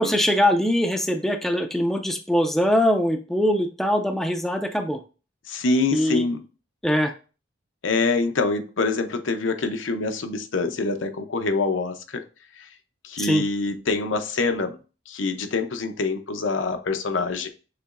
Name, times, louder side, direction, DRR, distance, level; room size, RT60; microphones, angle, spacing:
voice 1, 0.0-5.0 5.9-6.2 6.8-7.1 13.2-13.4, equal, ahead, 5 dB, 0.4 m, -22 dB
voice 2, 5.5-6.4 7.8-12.2 12.6-12.7 13.0-14.8 15.1-17.5, left 3 dB, 85° left, 7 dB, 0.7 m, -25 dB
6.6 x 3.0 x 2.5 m, 0.34 s
head